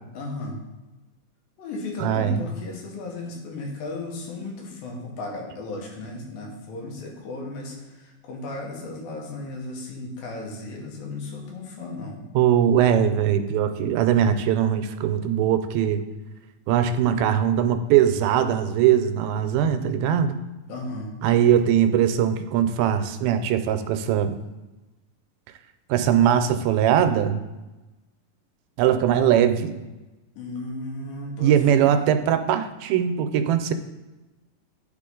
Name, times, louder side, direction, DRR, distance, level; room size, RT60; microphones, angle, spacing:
voice 1, 0.1-0.6 1.6-12.2 20.7-21.1 30.4-31.5 31.8-32.1, left 2 dB, 75° left, -1 dB, 2.9 m, -35 dB
voice 2, 2.0-2.4 12.4-16.0 16.7-20.4 21.2-24.4 25.9-27.4 28.8-29.7 31.4-33.7, right 9 dB, 85° right, 9 dB, 2.3 m, -21 dB
10.5 x 4.0 x 3.8 m, 1.1 s
omnidirectional pair, 4.2 m